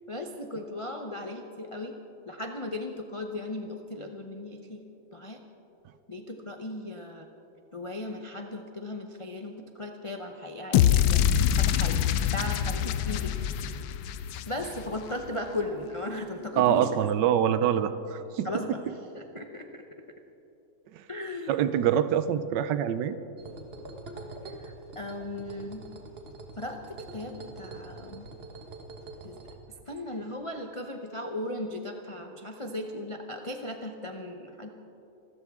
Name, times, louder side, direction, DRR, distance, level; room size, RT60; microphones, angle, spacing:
voice 1, 0.1-1.9 2.3-4.9 5.1-5.4 6.1-7.3 7.7-11.2 11.6-13.3 14.5-17.0 18.4-18.8 19.1-19.8 21.1-21.5 24.4-25.9 26.6-28.3 29.2-29.4 29.9-34.7, left 1 dB, 55° left, 3 dB, 0.3 m, -37 dB
sound 1, 10.7-15.0, left 10 dB, 75° left, 1.2 m, -25 dB
voice 2, 16.6-18.5 21.0-21.1 21.5-23.2, right 10 dB, 75° right, 12 dB, 1.2 m, -25 dB
sound 2, 23.4-29.5, right 2 dB, 35° right, 1.3 m, -44 dB
26.5 x 13.5 x 3.6 m, 3.0 s
omnidirectional pair, 2.0 m